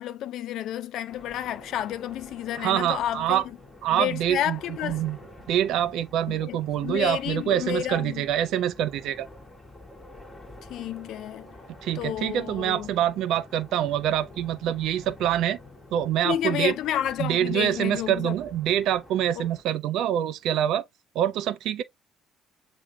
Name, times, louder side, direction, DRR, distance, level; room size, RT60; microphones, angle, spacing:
voice 1, 0.0-3.4 3.9-5.0 6.3-8.3 10.7-11.5 12.0-12.9 16.2-18.3 19.4-19.5, left 11 dB, 60° left, 0.5 m, -30 dB
sound 1, 1.1-19.6, left 2 dB, 25° left, 2.5 m, -48 dB
voice 2, 2.6-3.4 3.8-5.2 5.5-9.3 11.8-15.6 15.9-16.7 17.2-20.8 21.1-21.8, right 11 dB, 65° right, 0.4 m, -25 dB
7.3 x 3.0 x 2.3 m
hypercardioid pair, 55°, 0 cm